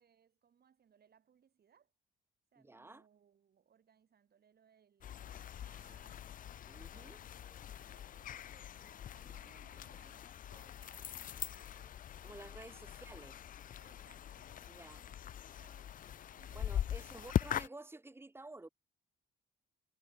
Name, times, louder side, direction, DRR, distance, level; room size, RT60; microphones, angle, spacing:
voice 1, 0.0-1.9 2.5-6.4 6.7-12.0 12.9-13.0 13.8-17.6, right 8 dB, 50° right, 4.8 m, -69 dB
voice 2, 2.6-3.0 6.7-7.2 12.2-13.4 14.7-15.0 16.5-18.7, right 2 dB, 10° right, 1.8 m, -52 dB
sound 1, 5.0-17.7, left 10 dB, 45° left, 0.4 m, -42 dB
cardioid pair, 90°, 20 cm